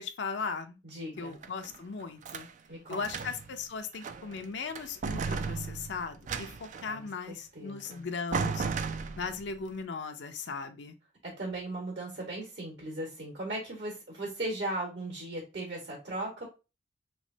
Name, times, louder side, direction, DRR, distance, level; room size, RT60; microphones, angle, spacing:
voice 1, 0.0-0.8 1.2-2.5 2.9-8.7 9.2-10.9, left 5 dB, 65° left, 7 dB, 0.5 m, -37 dB
voice 2, 0.8-1.4 2.7-3.0 6.8-8.0 11.2-16.4, right 1 dB, 60° right, -2 dB, 1.5 m, -38 dB
sound 1, 1.2-2.5 2.9-3.5 3.9-4.4 4.8-6.9 7.9-8.0 8.3-9.5, right 5 dB, 40° right, 0.3 m, -35 dB
3.5 x 3.1 x 2.7 m, 0.28 s
head